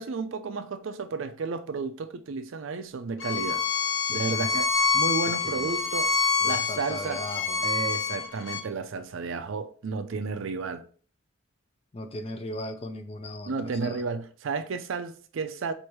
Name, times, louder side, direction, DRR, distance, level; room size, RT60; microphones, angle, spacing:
voice 1, 0.0-3.6 4.1-6.1 6.4-7.2 7.6-10.9 13.5-15.7, right 4 dB, 70° right, 0.4 m, -32 dB
Bowed string instrument, 3.2-8.6, left 5 dB, 70° left, 0.6 m, -27 dB
voice 2, 4.1-4.6 5.2-5.9 6.4-7.7 11.9-14.0, left 1 dB, 30° left, 0.4 m, -38 dB
4.6 x 2.6 x 2.9 m
head